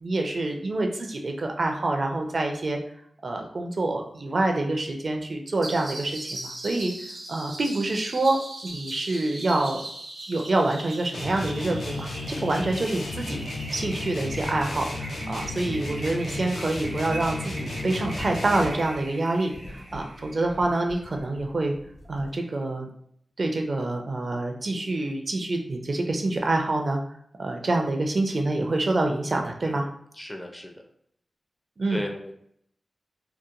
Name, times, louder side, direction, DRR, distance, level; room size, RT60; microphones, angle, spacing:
voice 1, 0.0-2.8 3.2-6.9 7.3-8.4 8.6-9.8 10.3-13.5 13.7-21.7 22.1-22.9 23.4-27.0 27.4-29.9 31.8-32.0, right 2 dB, 55° right, 3 dB, 0.4 m, -26 dB
sound 1, 5.6-20.8, right 1 dB, 90° right, 0.7 m, -40 dB
sound 2, 11.1-18.9, left 2 dB, 80° left, 0.4 m, -34 dB
sound 3, 15.2-17.4 18.1-22.3, equal, 50° left, 1.0 m, -46 dB
voice 2, 30.1-30.8 31.9-32.3, left 1 dB, 15° left, 3 dB, 0.4 m, -36 dB
2.8 x 2.1 x 2.4 m, 0.68 s
wide cardioid pair, 85°, 0 cm